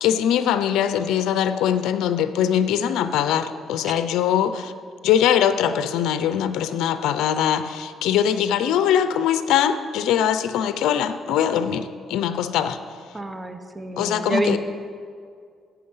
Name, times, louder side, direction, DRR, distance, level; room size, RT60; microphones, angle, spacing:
voice 1, 0.0-4.7 5.0-12.8 14.0-14.6, left 9 dB, 90° left, 11 dB, 0.6 m, -22 dB
voice 2, 13.1-14.6, right 2 dB, 20° right, 7 dB, 1.1 m, -27 dB
14.0 x 9.6 x 5.6 m, 2.2 s
cardioid pair, 90°, 0 cm